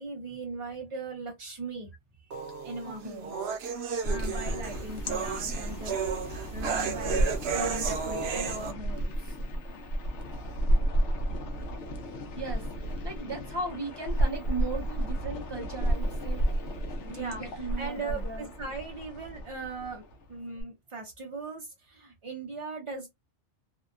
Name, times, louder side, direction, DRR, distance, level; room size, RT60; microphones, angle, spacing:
voice 1, 0.0-1.9 2.6-3.5 4.0-9.4 17.1-20.0 20.3-23.1, right 3 dB, 50° right, 0.4 m, -39 dB
sound 1, 2.3-8.7, right 6 dB, 65° right, 0.8 m, -33 dB
voice 2, 2.8-3.3 12.4-12.6 13.0-16.4 17.0-18.5, right 3 dB, 25° right, 0.7 m, -37 dB
sound 2, 4.0-20.6, right 1 dB, 80° left, 1.0 m, -32 dB
2.8 x 2.1 x 2.3 m
omnidirectional pair, 1.2 m